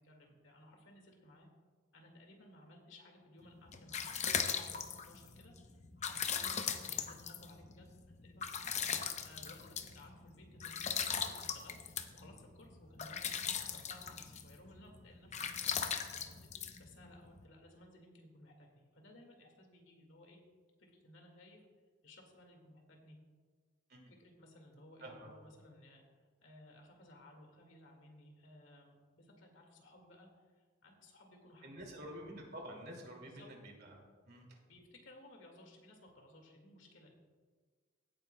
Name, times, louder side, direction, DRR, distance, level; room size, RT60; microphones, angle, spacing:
voice 1, 0.0-1.5 1.9-15.8 16.1-20.4 20.8-21.7 22.0-23.2 24.0-32.3 33.2-33.5 34.7-37.1, left 1 dB, 80° left, 1 dB, 2.1 m, -59 dB
sound 1, 3.5-17.4, left 7 dB, 40° left, 0.7 m, -40 dB
voice 2, 31.6-34.6, equal, 60° right, 0 dB, 2.4 m, -49 dB
17.0 x 9.1 x 2.3 m, 1.5 s
head